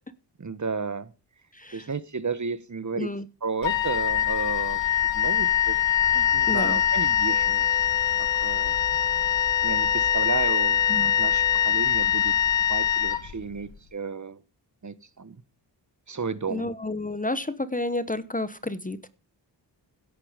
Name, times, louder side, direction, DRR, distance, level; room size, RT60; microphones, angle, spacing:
voice 1, 0.4-1.1 1.7-3.1 3.4-4.8 5.1-5.8 6.1-7.7 8.2-8.7 9.6-10.8 11.2-12.3 12.7-14.4 14.8-15.4 16.1-16.7, right 5 dB, 40° right, 15 dB, 1.2 m, -33 dB
voice 2, 1.5-1.9 3.0-3.3 6.5-6.8 10.9-11.1 16.5-19.1, left 2 dB, 20° left, 15 dB, 1.0 m, -30 dB
Wind instrument woodwind instrument, 3.6-13.7, left 9 dB, 85° left, 1.4 m, -23 dB
Wind instrument woodwind instrument 2, 7.3-11.9, equal, 10° right, 4.0 m, -43 dB
16.5 x 8.5 x 5.1 m, 0.32 s
wide cardioid pair, 115°, 43 cm